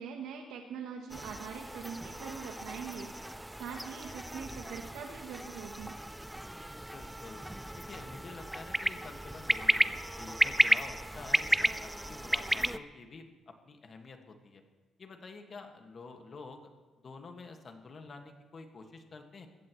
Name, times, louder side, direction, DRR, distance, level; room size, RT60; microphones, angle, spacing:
voice 1, 0.0-6.0, right 6 dB, 90° right, 3 dB, 1.0 m, -43 dB
sound 1, 1.1-12.8, right 1 dB, 5° right, 0.5 m, -33 dB
voice 2, 6.7-7.4 7.8-14.6 15.0-16.7 17.0-19.5, left 4 dB, 45° left, 5 dB, 1.7 m, -49 dB
20.5 x 15.0 x 3.1 m, 1.3 s
cardioid pair, 90°, 0 cm